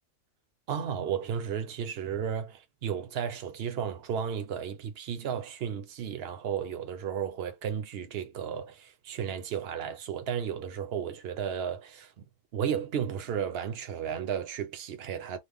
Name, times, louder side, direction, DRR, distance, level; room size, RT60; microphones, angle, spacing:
voice 1, 0.7-12.1 12.5-15.4, right 8 dB, 55° right, 0.8 m, -33 dB
3.0 x 2.1 x 3.5 m
omnidirectional pair, 1.3 m